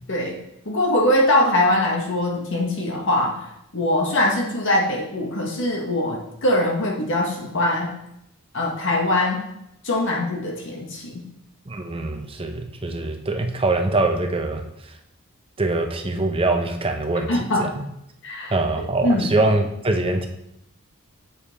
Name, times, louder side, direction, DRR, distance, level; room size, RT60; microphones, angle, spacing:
voice 1, 0.6-3.5 3.7-7.9 8.5-9.4 9.8-11.2 17.3-17.7 18.2-18.5 19.0-19.3, left 1 dB, 55° left, 0 dB, 1.5 m, -22 dB
voice 2, 11.7-14.6 15.6-17.8 18.5-20.3, right 2 dB, 25° right, 5 dB, 0.7 m, -23 dB
7.0 x 5.4 x 4.2 m, 0.80 s
head